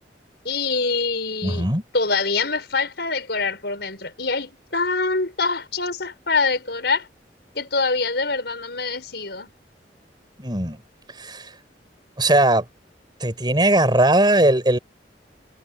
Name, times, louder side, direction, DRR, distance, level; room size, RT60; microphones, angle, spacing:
voice 1, 0.4-1.7 1.9-7.1 7.6-9.5, left 4 dB, 65° left, 7.2 m, -24 dB
voice 2, 1.4-1.8 10.4-10.8 11.2-11.5 12.2-12.6 13.2-14.8, right 1 dB, 25° right, 6.1 m, -19 dB
head